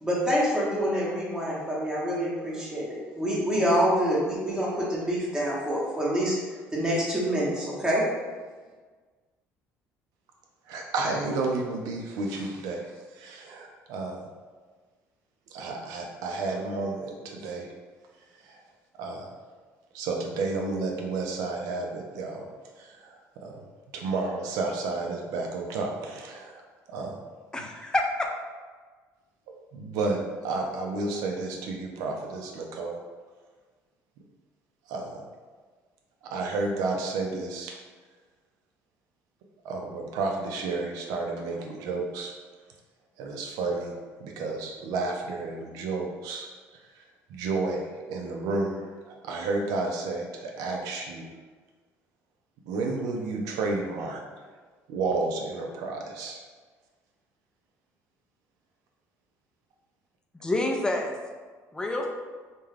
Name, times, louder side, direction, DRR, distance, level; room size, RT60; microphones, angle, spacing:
voice 1, 0.0-6.4 6.7-8.1, equal, 10° right, -6 dB, 0.9 m, -26 dB
voice 2, 10.7-14.3 15.5-17.7 18.4-18.6 19.0-19.3 19.9-22.5 22.8-23.6 23.9-26.6 26.9-27.2 27.6-27.7 29.7-33.0 34.9-35.3 36.2-37.7 39.6-42.3 43.2-51.3 52.7-54.2 54.9-56.4, right 3 dB, 80° right, 1 dB, 0.5 m, -31 dB
voice 3, 27.5-28.3 60.4-61.1 61.7-62.1, left 2 dB, 10° left, 1 dB, 0.4 m, -27 dB
2.4 x 2.2 x 3.2 m, 1.4 s
cardioid pair, 95°, 6 cm